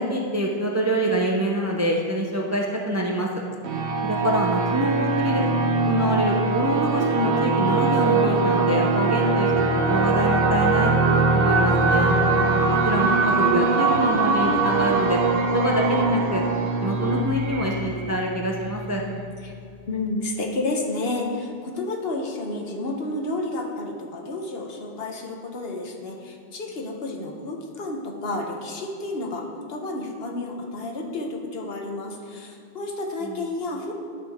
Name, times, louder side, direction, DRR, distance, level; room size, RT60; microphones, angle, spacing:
voice 1, 0.0-3.4 4.0-5.5 5.9-12.2 12.8-15.2 15.5-16.4 16.8-19.0 33.2-33.4, equal, 20° right, -1 dB, 0.5 m, -25 dB
sound 1, 3.6-19.0, right 3 dB, 65° right, 0.9 m, -22 dB
voice 2, 19.9-33.9, left 2 dB, 65° left, 2 dB, 1.1 m, -31 dB
11.0 x 5.2 x 3.5 m, 2.3 s
omnidirectional pair, 1.1 m